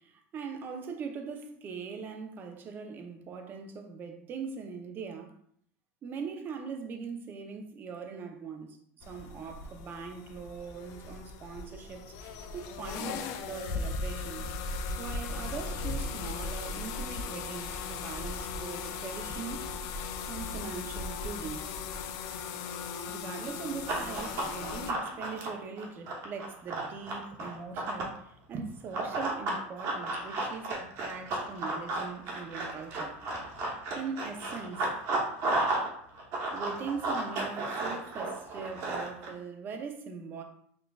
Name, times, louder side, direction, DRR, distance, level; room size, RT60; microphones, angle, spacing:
voice 1, 0.0-5.3 6.0-14.5 15.0-19.6 20.3-21.8 23.1-33.2 33.9-34.8 36.5-40.4, right 5 dB, 30° right, 4 dB, 0.6 m, -41 dB
sound 1, 9.0-24.9, left 4 dB, 55° left, 0.4 m, -37 dB
Run, 23.9-28.2 28.9-35.9 36.2-39.3, right 2 dB, 50° right, 1.0 m, -33 dB
5.9 x 2.3 x 2.3 m, 0.66 s
supercardioid pair, 135°, 7 cm